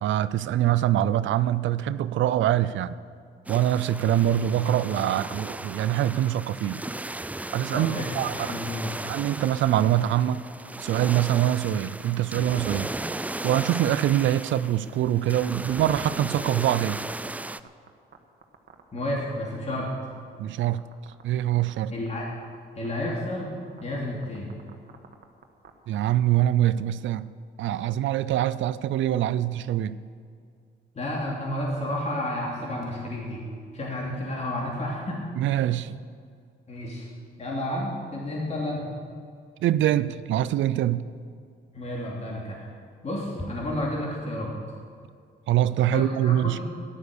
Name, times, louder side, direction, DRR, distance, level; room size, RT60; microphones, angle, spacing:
voice 1, 0.0-3.0 3.5-6.8 7.5-8.3 9.1-10.4 10.8-12.9 13.4-17.0 20.4-20.8 21.2-21.9 25.9-27.3 27.6-30.0 35.4-36.0 39.6-41.0 45.5-46.6, right 12 dB, 75° right, 15 dB, 0.5 m, -24 dB
sound 1, 3.5-17.6, right 2 dB, 5° right, 0.4 m, -36 dB
voice 2, 7.7-8.9 18.9-19.9 21.9-22.3 22.7-23.5 23.8-24.5 30.9-33.4 33.7-35.2 36.7-37.1 37.4-38.8 41.7-42.7 43.0-44.5 45.9-46.7, left 1 dB, 35° left, -3 dB, 2.9 m, -31 dB
sound 2, 8.2-8.7 9.1-9.3 9.8-11.1 11.3-11.5 11.9-12.1 12.5-12.6 13.0-13.8 14.1-17.1 17.4-18.2 18.4-19.0 19.3-20.2 20.6-21.2 21.5-21.7 22.1-22.5 22.8-22.9 23.1-23.4 23.8-24.0 24.2-25.7, right 8 dB, 55° right, 1.5 m, -48 dB
13.5 x 11.5 x 6.7 m, 2.2 s
cardioid pair, 90°, 20 cm